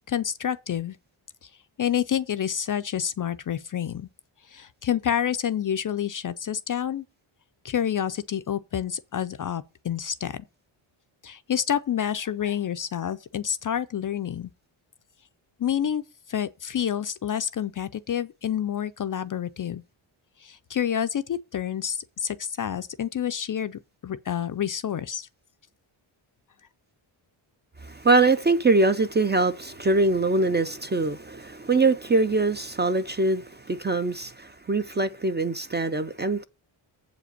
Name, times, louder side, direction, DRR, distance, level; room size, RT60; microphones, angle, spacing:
voice 1, 0.1-1.0 1.8-4.1 4.5-7.0 7.6-10.4 11.2-14.5 15.6-16.0 16.3-19.8 20.4-25.3, left 9 dB, 45° left, 0.4 m, -28 dB
voice 2, 27.8-36.4, right 3 dB, 20° right, 0.4 m, -23 dB
7.7 x 5.0 x 6.5 m
wide cardioid pair, 140°, 49 cm